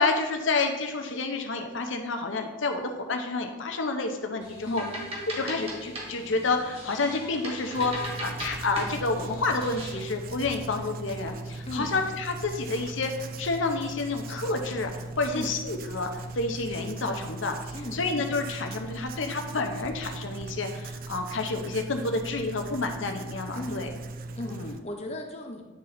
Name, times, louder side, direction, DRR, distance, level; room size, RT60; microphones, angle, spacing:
voice 1, 0.0-4.8 5.3-23.9 24.5-24.7, left 3 dB, 80° left, 5 dB, 0.8 m, -29 dB
sound 1, 4.4-10.1, right 1 dB, 30° right, 1.4 m, -39 dB
voice 2, 4.6-5.0 11.7-11.9 15.3-15.5 17.7-18.0 23.5-24.0 24.3-25.7, left 1 dB, 35° left, 3 dB, 0.8 m, -36 dB
Writing, 7.7-24.8, right 2 dB, 50° right, 0.4 m, -39 dB
9.6 x 3.8 x 4.2 m, 1.2 s
head